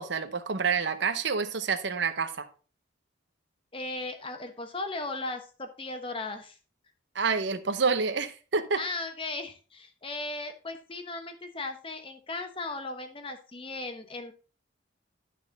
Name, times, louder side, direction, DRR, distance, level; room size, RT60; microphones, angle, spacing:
voice 1, 0.0-2.5 7.1-8.8, right 5 dB, 65° right, 0.8 m, -28 dB
voice 2, 3.7-6.6 8.7-14.3, left 2 dB, 25° left, 1.0 m, -37 dB
12.0 x 4.2 x 4.0 m
head